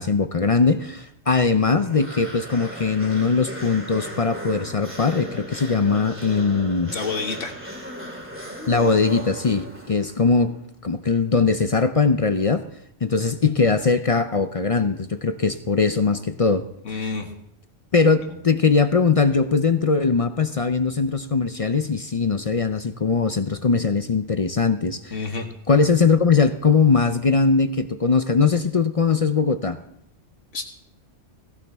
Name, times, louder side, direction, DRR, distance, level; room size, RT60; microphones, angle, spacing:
voice 1, 0.0-7.0 8.7-12.6 13.0-16.7 17.0-17.1 17.9-25.2 25.7-29.8, left 4 dB, 45° left, 10 dB, 0.5 m, -20 dB
sound 1, 1.8-10.3, equal, 10° right, 2.4 m, -36 dB
voice 2, 6.9-7.5 16.8-17.3 25.1-25.4 30.5-30.6, left 4 dB, 80° left, 3 dB, 1.7 m, -28 dB
17.0 x 16.0 x 3.5 m, 0.76 s
omnidirectional pair, 1.2 m